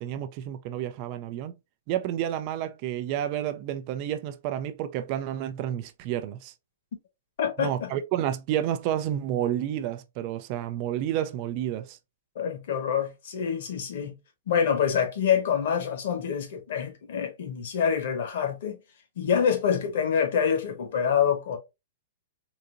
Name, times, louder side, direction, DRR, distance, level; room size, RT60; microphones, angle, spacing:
voice 1, 0.0-1.6 1.9-6.5 7.6-12.0, right 11 dB, 40° right, 0.4 m, -30 dB
voice 2, 7.4-7.9 12.3-14.1 14.5-18.8 19.2-21.6, left 7 dB, 65° left, 1.2 m, -26 dB
3.8 x 2.7 x 2.5 m
hypercardioid pair, 145°, 0 cm